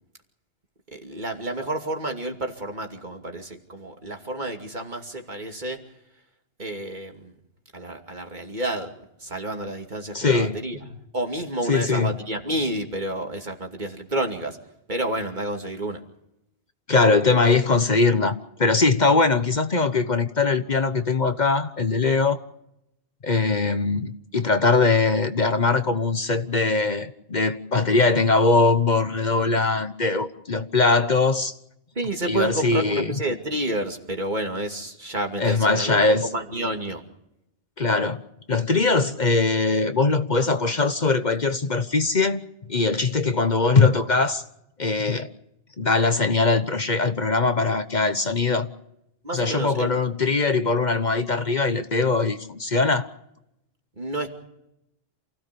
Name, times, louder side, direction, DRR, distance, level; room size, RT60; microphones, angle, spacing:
voice 1, 0.9-5.8 6.6-7.3 7.7-8.9 9.2-10.9 11.1-14.6 14.9-16.0 32.0-37.0 49.2-49.9 54.0-54.3, right 1 dB, 45° right, 2.7 m, -30 dB
voice 2, 10.1-10.6 11.7-12.1 16.9-22.4 23.2-31.5 32.3-33.1 35.4-36.3 37.8-38.2 38.5-42.4 42.7-44.4 44.8-45.3 45.8-48.7 49.3-53.1, left 3 dB, 45° left, 1.1 m, -21 dB
28.5 x 16.5 x 6.9 m
omnidirectional pair, 1.0 m